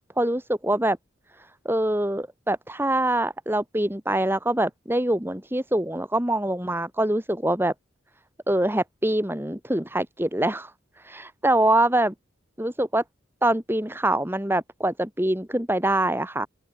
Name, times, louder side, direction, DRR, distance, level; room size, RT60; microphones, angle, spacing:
voice 1, 0.2-1.0 1.4-7.7 8.5-10.7 11.0-12.1 12.6-13.0 13.4-16.5, right 1 dB, 10° right, 2.1 m, -24 dB
open air
head